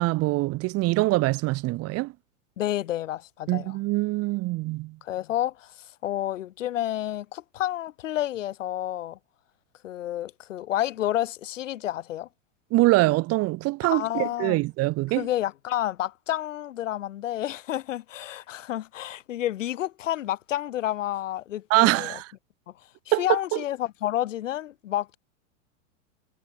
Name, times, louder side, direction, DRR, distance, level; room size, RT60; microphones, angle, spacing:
voice 1, 0.0-2.1 3.5-5.0 12.7-15.2 21.7-22.3 23.1-23.2 23.5-23.6, right 20 dB, 40° right, 1.7 m, -24 dB
voice 2, 2.6-3.8 5.0-9.2 9.8-12.3 13.8-14.6 15.1-22.2 22.7-22.8 23.1-25.2, left 13 dB, 80° left, 7.0 m, -30 dB
supercardioid pair, 130°, 37 cm